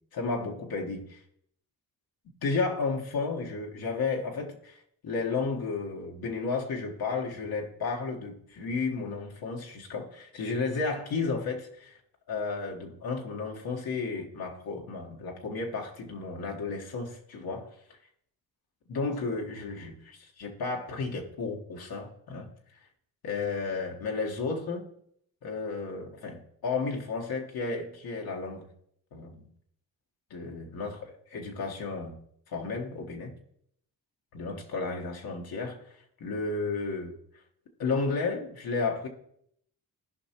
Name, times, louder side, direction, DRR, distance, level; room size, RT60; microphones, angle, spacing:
voice 1, 0.1-1.2 2.4-12.0 12.3-17.7 18.9-22.5 23.2-24.8 25.4-28.6 29.1-29.5 30.3-32.1 32.5-33.3 34.3-35.8 36.2-37.1 37.8-39.1, left 4 dB, 65° left, 1.5 m, -33 dB
15.0 x 5.3 x 3.0 m
cardioid pair, 80°, 39 cm